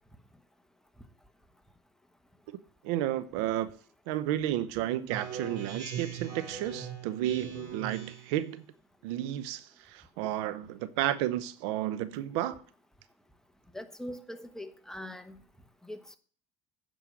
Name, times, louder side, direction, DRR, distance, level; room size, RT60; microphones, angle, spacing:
voice 1, 2.8-3.7 4.1-8.6 9.0-12.6, right 13 dB, 80° right, 0.7 m, -32 dB
Speech synthesizer, 5.1-8.4, right 7 dB, 65° right, 4.0 m, -40 dB
voice 2, 13.7-15.4 15.8-16.2, left 1 dB, 5° left, 1.1 m, -42 dB
9.0 x 5.4 x 6.1 m
supercardioid pair, 90°, 14 cm